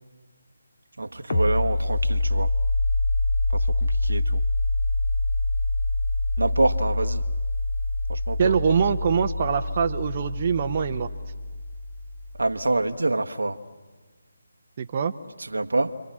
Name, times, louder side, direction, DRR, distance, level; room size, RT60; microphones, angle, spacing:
voice 1, 1.0-2.5 3.5-4.4 6.4-7.2 8.1-8.6 12.4-13.6 15.4-16.0, right 2 dB, 75° right, 1.3 m, -26 dB
sound 1, 1.3-12.6, left 2 dB, 55° left, 1.9 m, -26 dB
voice 2, 8.4-11.1 14.8-15.1, right 6 dB, 35° right, 0.9 m, -24 dB
29.5 x 24.5 x 7.5 m
figure-of-eight pair, 150°, 0 cm